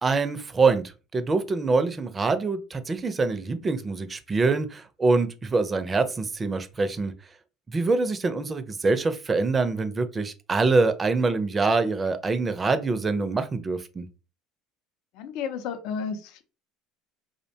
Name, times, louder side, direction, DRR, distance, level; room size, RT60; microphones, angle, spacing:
voice 1, 0.0-0.8 1.1-7.1 7.7-14.1, right 3 dB, 25° right, 0.4 m, -24 dB
voice 2, 15.1-16.4, left 6 dB, 70° left, 0.5 m, -32 dB
2.5 x 2.1 x 2.7 m
hypercardioid pair, 80°, 0 cm